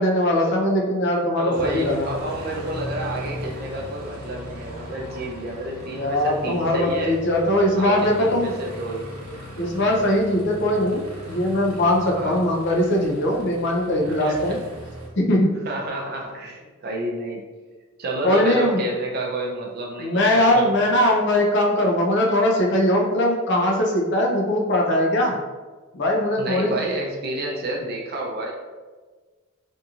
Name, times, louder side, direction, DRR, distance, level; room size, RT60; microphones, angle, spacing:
voice 1, 0.0-2.1 5.9-8.6 9.6-14.6 15.2-15.5 18.2-18.8 20.0-25.4 25.9-26.8, left 1 dB, 55° left, 0 dB, 0.5 m, -21 dB
voice 2, 1.4-7.2 7.8-9.1 12.1-12.4 14.0-14.4 15.7-17.5 18.0-20.9 26.4-28.5, right 1 dB, 45° right, -1 dB, 0.5 m, -30 dB
Aircraft, 1.5-15.1, equal, 90° right, 0.7 m, -37 dB
2.8 x 2.6 x 2.4 m, 1.4 s
head